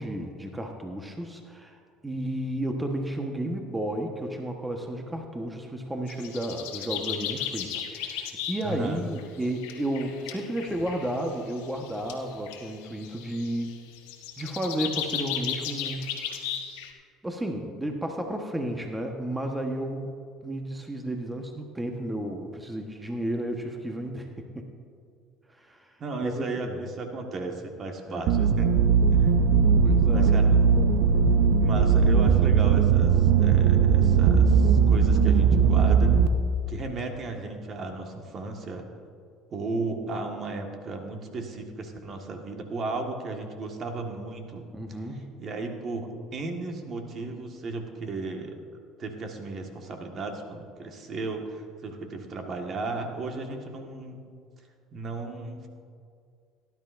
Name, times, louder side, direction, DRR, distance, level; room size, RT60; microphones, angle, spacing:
voice 1, 0.0-13.7 14.4-16.2 17.2-20.2 20.4-24.3 24.5-24.7 25.6-25.9 26.2-26.7 28.1-28.2 29.8-30.3 44.7-45.4, right 1 dB, 10° right, 3 dB, 1.2 m, -32 dB
sound 1, 6.1-8.8 9.2-16.9, left 9 dB, 80° left, 1.3 m, -35 dB
voice 2, 8.6-9.0 26.0-28.7 29.2-29.3 30.1-30.6 31.6-36.1 36.7-38.8 39.5-44.6 45.4-48.6 49.0-54.2 54.9-55.7, right 3 dB, 45° right, 3 dB, 1.6 m, -35 dB
sound 2, 28.3-36.3, right 6 dB, 70° right, 0.6 m, -19 dB
18.0 x 11.0 x 2.6 m, 2.2 s
hypercardioid pair, 75°, 0 cm